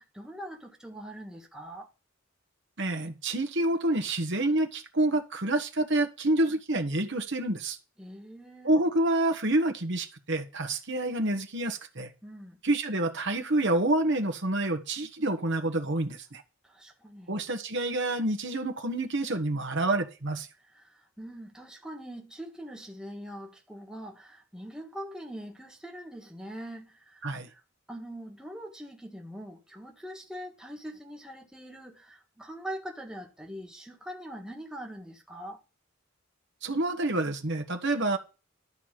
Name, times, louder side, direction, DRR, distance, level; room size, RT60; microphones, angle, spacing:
voice 1, 0.0-1.9 8.0-8.9 12.2-12.6 16.6-17.4 20.6-27.6 27.9-35.6, equal, 5° right, 1.6 m, -43 dB
voice 2, 2.8-7.8 8.6-12.1 12.6-16.4 17.3-20.5 27.2-27.5 36.6-38.2, right 2 dB, 60° right, 1.5 m, -28 dB
12.5 x 4.8 x 7.5 m
head